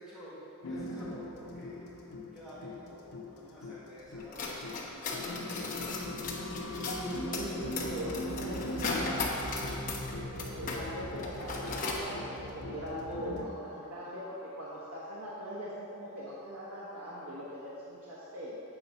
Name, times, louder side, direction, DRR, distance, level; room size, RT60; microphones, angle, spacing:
voice 1, 0.0-1.9 2.3-5.6, equal, ahead, -10 dB, 1.6 m, -50 dB
sound 1, 0.6-13.5, left 1 dB, 85° left, 0.8 m, -40 dB
sound 2, 4.2-10.8 11.1-12.0, left 3 dB, 40° left, 1.0 m, -37 dB
voice 2, 6.7-9.4 10.3-18.6, equal, 80° right, -7 dB, 1.2 m, -41 dB
8.5 x 4.1 x 5.4 m, 2.7 s
head